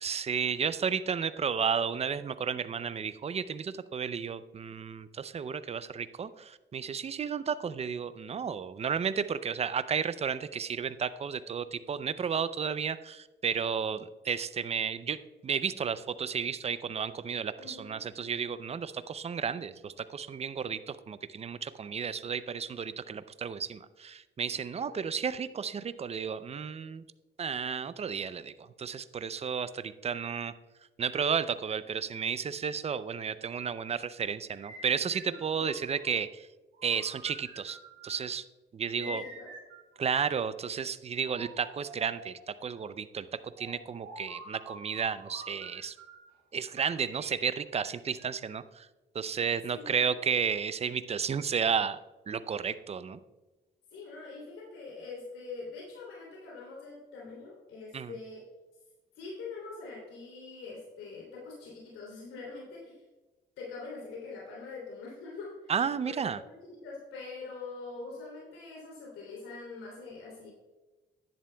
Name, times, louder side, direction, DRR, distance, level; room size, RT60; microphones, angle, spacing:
voice 1, 0.0-15.2 15.4-27.0 27.4-30.5 31.0-36.5 36.8-37.8 38.0-38.4 38.7-39.2 40.0-43.3 43.6-45.9 46.5-48.9 49.1-52.0 52.3-53.2 57.9-58.1 65.7-66.4, right 6 dB, 30° right, 14 dB, 0.5 m, -32 dB
voice 2, 17.6-18.0 24.5-24.9 35.2-35.6 38.9-39.5 49.7-49.9 53.9-58.4 59.1-63.0 63.6-65.7 66.0-70.5, left 4 dB, 85° left, -4 dB, 3.1 m, -44 dB
sound 1, 34.5-36.1 36.7-38.3 39.0-40.6 41.3-42.5 43.6-46.3 46.8-48.6, right 2 dB, 85° right, 2.6 m, -48 dB
10.5 x 10.5 x 2.3 m, 1.2 s
cardioid pair, 90°, 20 cm